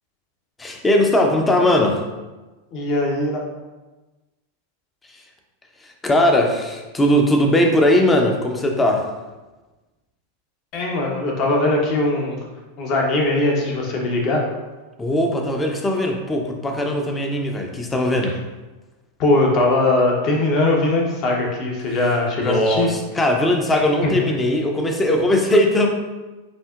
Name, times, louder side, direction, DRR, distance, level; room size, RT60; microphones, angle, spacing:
voice 1, 0.6-2.0 6.0-9.1 15.0-18.4 22.4-25.9, left 1 dB, 15° left, 3 dB, 0.7 m, -19 dB
voice 2, 2.7-3.4 10.7-12.4 12.8-14.4 19.2-22.9 24.0-24.1, left 2 dB, 40° left, 0 dB, 1.0 m, -20 dB
7.6 x 2.8 x 2.4 m, 1.2 s
figure-of-eight pair, 90°, 0 cm